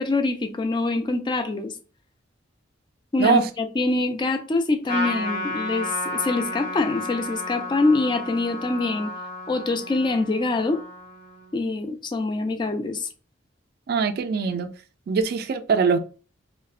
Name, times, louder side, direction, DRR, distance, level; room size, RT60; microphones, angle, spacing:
voice 1, 0.0-1.7 3.1-9.1 9.5-10.8 11.5-13.1, left 2 dB, 25° left, 0.3 m, -24 dB
Trumpet, 4.9-11.6, left 2 dB, 55° left, 0.9 m, -32 dB
voice 2, 13.9-14.7 15.1-16.0, right 5 dB, 55° right, 0.3 m, -22 dB
2.7 x 2.0 x 2.3 m
head